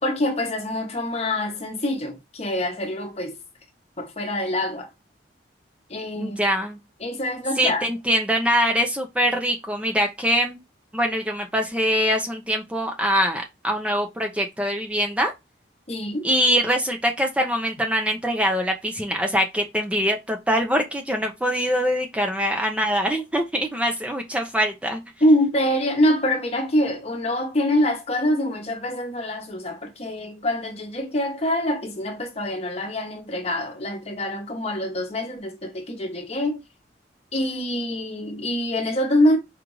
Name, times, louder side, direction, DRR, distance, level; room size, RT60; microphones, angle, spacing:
voice 1, 0.0-3.4 4.0-4.9 5.9-6.4 7.0-7.9 15.9-16.3 25.2-36.6 37.3-39.4, left 1 dB, 35° left, 0.9 m, -25 dB
voice 2, 6.2-6.8 7.6-10.6 10.9-15.3 16.2-25.0, equal, 5° right, 0.5 m, -23 dB
4.9 x 2.5 x 3.0 m
head